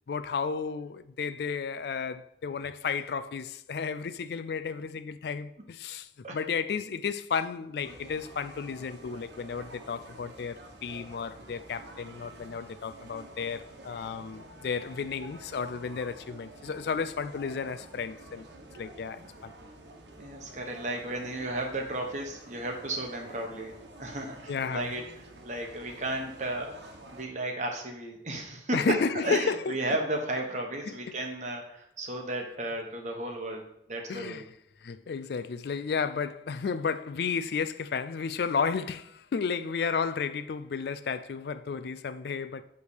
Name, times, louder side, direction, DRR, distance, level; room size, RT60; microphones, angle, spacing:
voice 1, 0.1-18.5 18.8-19.5 24.5-24.9 28.7-29.7 30.9-31.2 34.1-34.4 34.8-42.6, left 5 dB, 60° left, 0.3 m, -33 dB
sound 1, 7.8-27.2, right 1 dB, 70° right, 1.2 m, -49 dB
voice 2, 20.2-23.7 24.0-25.0 25.4-26.8 27.1-33.6 33.9-34.5, right 1 dB, 40° right, 1.3 m, -34 dB
8.1 x 3.4 x 6.4 m
head